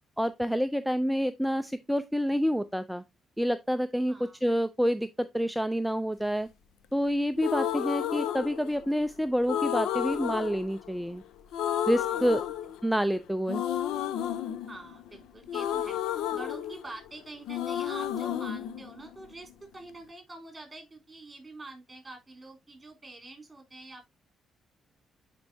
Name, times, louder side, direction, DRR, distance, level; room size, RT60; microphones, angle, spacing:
voice 1, 0.2-3.0 3.4-6.5 6.9-11.2 11.9-12.4 12.8-13.6, equal, ahead, 0.4 m, -28 dB
voice 2, 4.1-4.4 12.0-12.7 14.7-24.1, right 2 dB, 15° right, 3.4 m, -46 dB
sound 1, 7.4-9.0 9.5-11.2 11.5-13.1 13.5-17.2 17.5-19.5, left 10 dB, 90° left, 0.5 m, -32 dB
10.5 x 4.5 x 2.7 m
cardioid pair, 90°, 0 cm